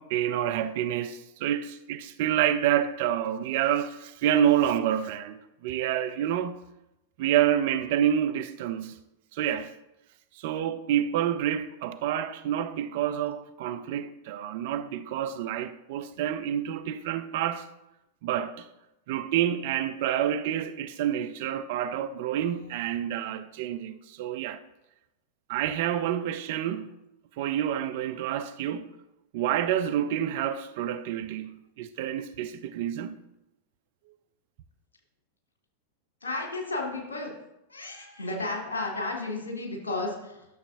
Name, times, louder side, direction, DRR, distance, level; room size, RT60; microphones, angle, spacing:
voice 1, 0.0-6.6 7.2-9.0 9.3-9.8 10.4-17.7 18.2-18.7 19.1-24.6 25.5-26.9 27.4-28.9 29.3-33.2, right 10 dB, 50° right, 0.5 m, -28 dB
voice 2, 36.2-37.3 37.7-40.5, left 2 dB, 70° left, 1.8 m, -33 dB
11.5 x 6.7 x 2.6 m
figure-of-eight pair, 90°, 0 cm